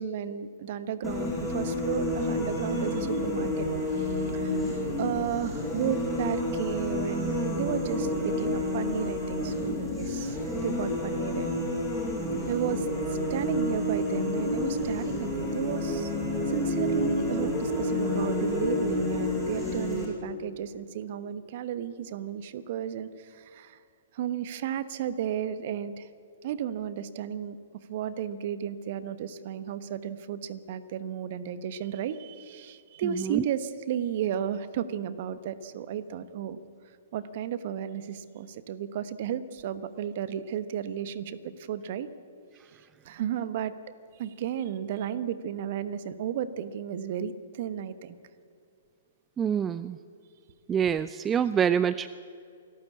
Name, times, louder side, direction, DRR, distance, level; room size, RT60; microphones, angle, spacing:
voice 1, 0.0-4.6 5.0-9.7 10.0-11.7 12.5-12.9 13.3-16.1 16.5-23.8 24.1-26.1 26.4-36.6 37.1-42.1 43.0-43.8 44.2-48.2, right 9 dB, 50° right, 14 dB, 1.2 m, -33 dB
sound 1, 1.0-20.1, left 1 dB, 5° left, 7.6 m, -29 dB
voice 2, 49.4-50.0 50.7-52.1, right 8 dB, 20° right, 15 dB, 0.4 m, -25 dB
27.5 x 12.5 x 8.5 m, 2.5 s
figure-of-eight pair, 115°, 0 cm